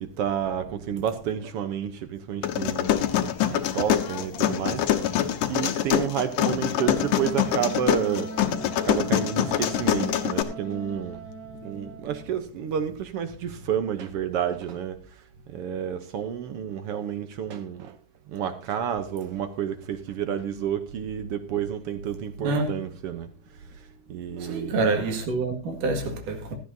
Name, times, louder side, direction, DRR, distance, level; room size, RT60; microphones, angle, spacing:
voice 1, 0.0-3.0 3.4-5.2 5.5-8.3 8.8-11.2 11.6-18.0 18.3-24.9, right 8 dB, 70° right, 1.4 m, -30 dB
sound 1, 2.4-10.4, left 11 dB, 85° left, 2.6 m, -25 dB
Wind instrument woodwind instrument, 6.8-12.3, right 2 dB, 40° right, 1.7 m, -39 dB
voice 2, 22.4-22.8 24.4-26.5, right 3 dB, 90° right, 3.6 m, -27 dB
16.5 x 13.0 x 2.7 m
omnidirectional pair, 3.6 m